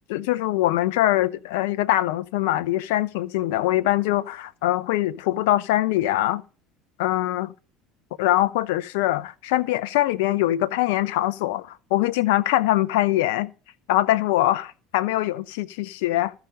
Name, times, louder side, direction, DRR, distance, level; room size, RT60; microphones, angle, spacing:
voice 1, 0.1-6.4 7.0-7.5 8.2-13.5 13.9-16.3, left 15 dB, 65° left, 0.5 m, -23 dB
14.0 x 5.8 x 5.1 m
figure-of-eight pair, 65°, 0 cm